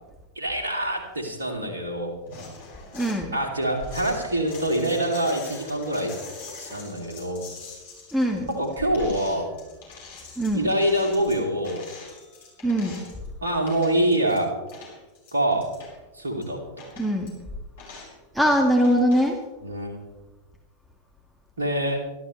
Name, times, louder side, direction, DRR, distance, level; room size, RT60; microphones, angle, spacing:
voice 1, 0.3-2.1 3.3-6.2 6.6-7.5 8.5-9.5 10.5-11.9 13.4-14.5 15.3-15.7 16.1-16.9 19.6-20.0 21.6-22.1, right 1 dB, 70° right, 2 dB, 2.7 m, -25 dB
sound 1, 2.3-3.2 3.7-13.3 13.6-14.4 14.7-15.9 16.4-16.5 16.8-17.3 17.8-18.1 18.8-19.3, left 3 dB, 55° left, 5.8 m, -43 dB
voice 2, 2.9-3.4 8.1-8.5 10.4-10.7 12.6-13.0 17.0-17.4 18.3-19.4, equal, 5° right, 2 dB, 1.8 m, -22 dB
24.5 x 12.5 x 3.2 m, 1.2 s
figure-of-eight pair, 90°, 0 cm